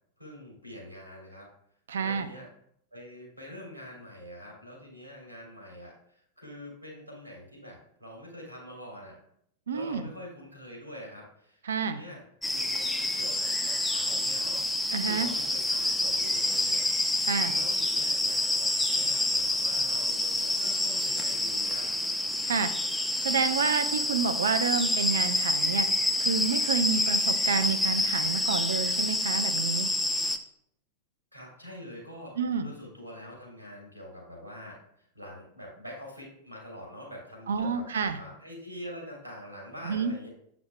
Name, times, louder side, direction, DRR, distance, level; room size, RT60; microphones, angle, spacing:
voice 1, 0.2-1.5 2.0-2.5 2.9-9.2 9.7-17.2 17.5-21.9 31.3-37.9 38.2-40.3, equal, 90° left, -2 dB, 2.7 m, -45 dB
voice 2, 1.9-2.3 9.7-10.0 11.7-12.0 14.9-15.3 17.2-17.5 22.4-22.7 23.2-25.9 26.2-29.9 32.4-32.7 37.5-38.2 39.8-40.1, right 6 dB, 65° right, 10 dB, 0.5 m, -29 dB
sound 1, 12.4-30.4, left 2 dB, 5° left, 0.5 m, -28 dB
7.7 x 5.9 x 2.2 m, 0.70 s
figure-of-eight pair, 90°, 0 cm